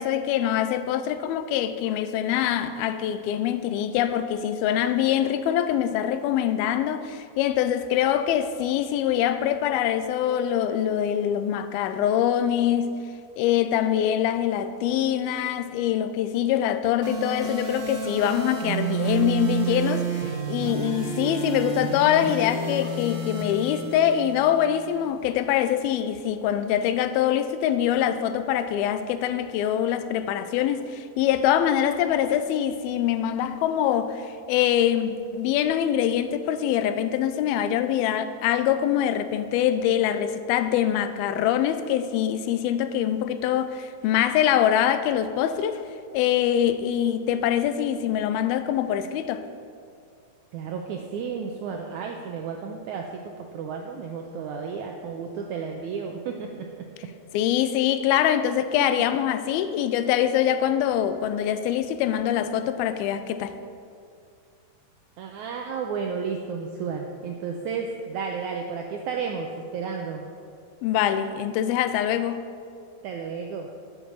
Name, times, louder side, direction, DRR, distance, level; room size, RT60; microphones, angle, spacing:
voice 1, 0.0-13.0 13.4-45.8 46.1-49.5 57.3-63.6 70.8-72.5, left 10 dB, 85° left, 2.5 m, -24 dB
sound 1, 17.0-25.0, right 4 dB, 65° right, 0.9 m, -30 dB
voice 2, 50.5-56.9 58.7-58.9 65.2-70.3 73.0-73.7, right 5 dB, 85° right, 1.7 m, -32 dB
11.0 x 8.8 x 6.8 m
omnidirectional pair, 4.2 m